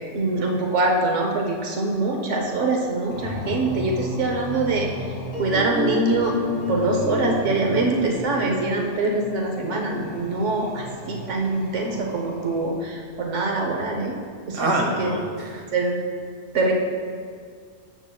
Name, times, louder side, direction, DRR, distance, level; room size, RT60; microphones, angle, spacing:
voice 1, 0.1-4.9 5.4-6.3 6.7-14.1 14.5-14.7 15.0-15.1 15.7-16.0 16.5-16.7, right 2 dB, 90° right, 1 dB, 1.3 m, -24 dB
sound 1, 3.1-13.0, left 1 dB, 55° left, 1.4 m, -36 dB
sound 2, 5.3-11.1, left 2 dB, 35° left, 2.7 m, -31 dB
voice 2, 14.5-15.6, right 1 dB, 50° right, 0 dB, 1.4 m, -25 dB
14.5 x 7.1 x 2.3 m, 2.1 s
omnidirectional pair, 1.2 m